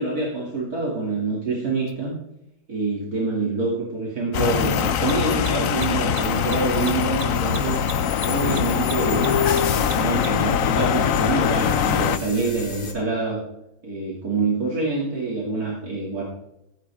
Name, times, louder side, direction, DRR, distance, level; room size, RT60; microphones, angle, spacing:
voice 1, 0.0-2.1 2.7-7.8 8.3-9.4 9.7-13.4 13.8-16.3, right 3 dB, 55° right, -5 dB, 3.1 m, -26 dB
Mechanisms, 1.9-2.0 4.9-10.5, right 6 dB, 75° right, 1.8 m, -37 dB
sound 1, 4.3-12.2, left 8 dB, 60° left, 1.0 m, -22 dB
sound 2, 7.3-12.9, left 2 dB, 30° left, 1.7 m, -37 dB
17.0 x 9.2 x 3.5 m, 0.83 s
omnidirectional pair, 1.9 m